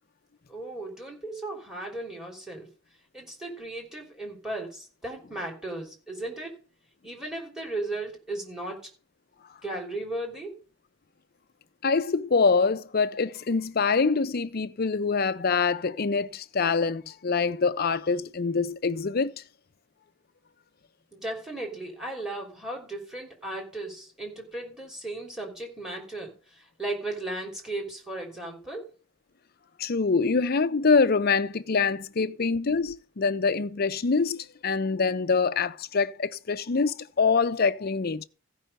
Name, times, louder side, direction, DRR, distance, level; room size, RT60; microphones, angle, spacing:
voice 1, 0.5-2.7 3.1-6.5 7.0-8.9 9.6-10.6 21.1-28.8, right 2 dB, 5° right, 3.3 m, -36 dB
voice 2, 11.8-19.4 29.8-38.3, left 4 dB, 45° left, 0.6 m, -25 dB
15.0 x 5.5 x 5.5 m
head